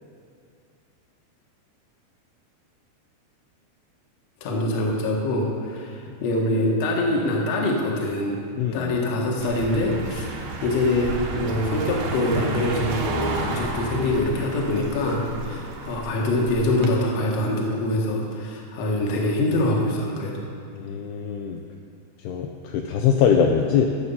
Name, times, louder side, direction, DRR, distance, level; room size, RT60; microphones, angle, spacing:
voice 1, 4.4-8.4 8.7-20.4, left 1 dB, 65° left, -1 dB, 1.6 m, -24 dB
voice 2, 8.6-8.9 15.5-15.6 20.8-21.6 22.3-23.9, left 7 dB, 90° left, 2 dB, 2.3 m, -22 dB
Car passing by, 9.4-16.9, right 3 dB, 70° right, 2.7 m, -32 dB
14.0 x 7.5 x 5.6 m, 2.4 s
omnidirectional pair, 5.4 m